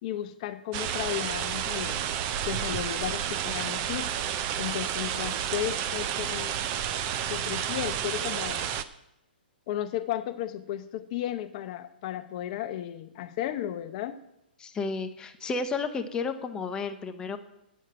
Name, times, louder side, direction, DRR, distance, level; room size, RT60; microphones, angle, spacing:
voice 1, 0.0-2.0 2.4-4.1 4.6-6.5 7.3-8.7 9.7-14.2, left 12 dB, 40° left, 9 dB, 0.9 m, -34 dB
sound 1, 0.7-8.8, right 9 dB, 35° right, 0.5 m, -31 dB
voice 2, 14.6-17.4, left 4 dB, 15° left, 7 dB, 0.8 m, -32 dB
9.0 x 6.4 x 8.0 m, 0.84 s
hypercardioid pair, 140°, 6 cm